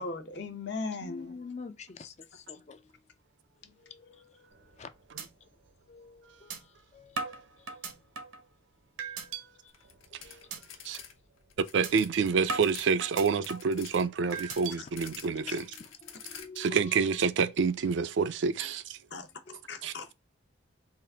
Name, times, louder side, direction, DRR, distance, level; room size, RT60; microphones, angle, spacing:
voice 1, 0.0-1.3 14.8-14.9 15.5-15.6 19.1-19.3 19.7-20.1, left 3 dB, 55° left, 0.8 m, -37 dB
voice 2, 1.0-2.8 3.8-4.5 4.8-4.9 5.9-7.3 7.6-7.7 9.0-9.7 10.1-10.5 15.4-17.0 19.5-19.6, left 5 dB, 35° left, 0.3 m, -47 dB
sound 1, 4.5-4.8 5.2-5.3 5.7-5.8 6.5-6.6 7.2-8.4 9.0-9.4 9.9-10.1 10.5-10.6 11.0-11.2 11.8-11.9 12.5-13.8 14.3-14.8, right 4 dB, 85° right, 0.9 m, -37 dB
sound 2, 9.7-11.1 11.4-12.9 13.1-16.7, left 8 dB, 85° left, 0.8 m, -48 dB
voice 3, 11.7-15.6 16.6-19.0 19.8-19.9, right 5 dB, 65° right, 0.4 m, -28 dB
3.8 x 2.5 x 3.4 m
head